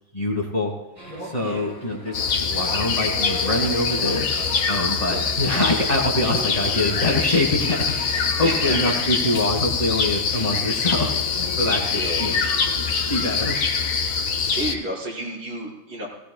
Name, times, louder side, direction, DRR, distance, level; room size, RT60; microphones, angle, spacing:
voice 1, 0.1-0.7 1.2-4.2 4.6-12.4 12.8-12.9 13.1-13.6, left 1 dB, 20° left, 0 dB, 1.6 m, -25 dB
sound 1, 1.0-8.2, left 1 dB, 50° right, 5.6 m, -37 dB
sound 2, 2.1-14.8, left 5 dB, 85° left, 1.9 m, -24 dB
voice 2, 8.4-9.0 11.9-12.3 14.5-16.1, right 1 dB, 90° right, -7 dB, 5.5 m, -31 dB
18.5 x 17.0 x 2.3 m, 1.0 s
omnidirectional pair, 2.1 m